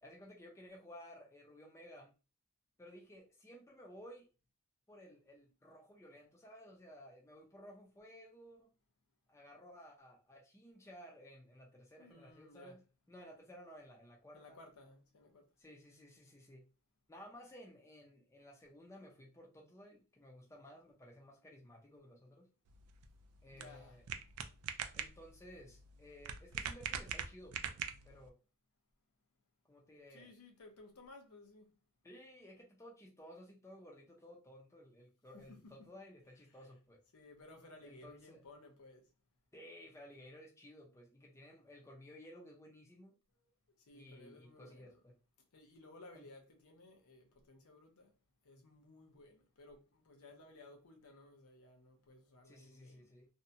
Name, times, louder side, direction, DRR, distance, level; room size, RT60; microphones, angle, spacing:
voice 1, 0.0-2.1 2.8-4.3 4.9-8.7 9.3-12.8 13.1-14.6 15.6-16.6 17.1-22.5 23.4-24.0 24.9-27.8 28.0-28.4 29.7-30.3 32.0-37.0 37.8-38.4 39.5-43.2 43.9-45.1 46.1-46.3 52.4-53.3, equal, 15° left, 0.5 m, -56 dB
voice 2, 12.0-12.8 14.3-15.5 23.5-24.0 30.1-31.8 35.3-35.9 36.5-36.7 37.1-39.1 43.3-43.5 43.8-45.0 45.5-48.2 48.4-53.1, left 2 dB, 75° left, 0.7 m, -58 dB
sound 1, 22.7-28.3, right 8 dB, 90° right, 0.4 m, -44 dB
2.7 x 2.2 x 2.6 m
head